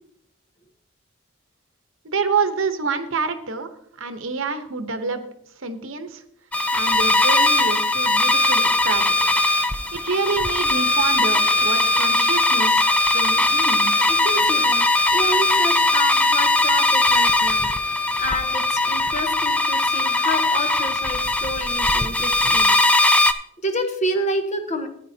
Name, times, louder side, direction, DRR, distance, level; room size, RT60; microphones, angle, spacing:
voice 1, 2.0-3.7 4.0-5.2 5.6-6.2 6.7-9.3 9.9-14.1, right 4 dB, 70° right, 8 dB, 1.0 m, -27 dB
sound 1, 6.5-23.3, left 2 dB, 5° left, 0.3 m, -19 dB
Crying sobbing, 8.6-9.6 10.1-10.6 11.2-12.2 13.1-15.3, equal, 70° left, 3.8 m, -49 dB
voice 2, 14.0-14.8 15.1-23.2 23.6-24.9, equal, 35° left, 5 dB, 1.1 m, -29 dB
14.0 x 9.5 x 2.8 m, 0.70 s
head